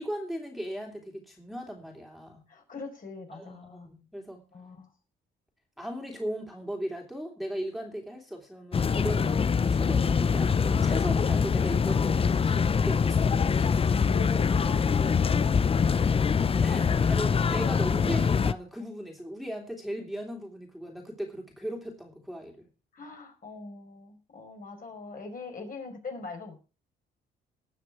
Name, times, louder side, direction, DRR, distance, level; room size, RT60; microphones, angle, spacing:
voice 1, 0.0-2.4 3.3-4.4 5.8-13.7 16.6-22.7, equal, ahead, 0 dB, 3.1 m, -37 dB
voice 2, 2.5-3.9 4.5-4.9 14.1-15.9 16.8-17.0 22.9-26.6, left 4 dB, 45° left, 2 dB, 5.0 m, -41 dB
sound 1, 8.7-18.5, left 6 dB, 30° left, 0.5 m, -24 dB
19.0 x 6.6 x 4.8 m, 0.33 s
cardioid pair, 90°, 20 cm